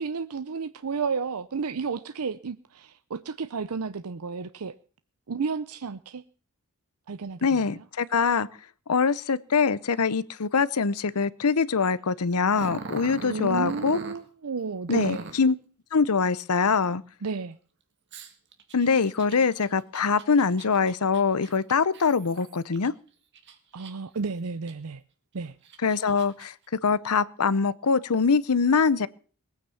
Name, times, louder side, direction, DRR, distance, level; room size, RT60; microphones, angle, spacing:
voice 1, 0.0-4.8 5.3-6.2 7.1-7.8 13.2-15.3 17.2-17.6 23.7-25.0 25.3-25.6, right 5 dB, 80° right, 12 dB, 0.6 m, -32 dB
voice 2, 7.4-8.5 8.9-14.0 14.9-15.5 15.9-17.0 18.7-22.9 25.8-26.5 26.8-29.1, left 5 dB, 85° left, 18 dB, 0.8 m, -23 dB
Growling, 12.5-14.2 14.9-15.5 18.1-22.9 23.3-24.2 24.7-24.8 25.4-26.5, right 3 dB, 50° right, 2.1 m, -41 dB
20.0 x 9.1 x 7.0 m, 0.42 s
head